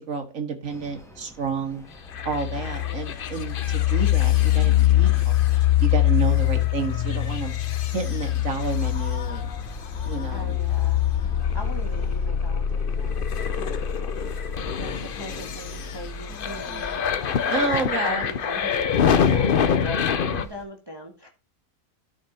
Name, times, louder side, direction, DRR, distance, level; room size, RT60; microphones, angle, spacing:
voice 1, 0.0-1.8 2.3-7.5 7.9-9.5 10.0-10.6 17.5-18.3, right 5 dB, 65° right, 4 dB, 2.0 m, -30 dB
sound 1, 0.7-20.6, right 1 dB, ahead, 1.8 m, -48 dB
sound 2, 2.1-20.4, left 10 dB, 50° left, 0.7 m, -24 dB
voice 2, 2.5-3.0 10.3-11.0 11.5-14.3 14.8-21.3, equal, 15° right, 2 dB, 1.5 m, -40 dB
12.0 x 4.9 x 4.1 m, 0.31 s
omnidirectional pair, 1.5 m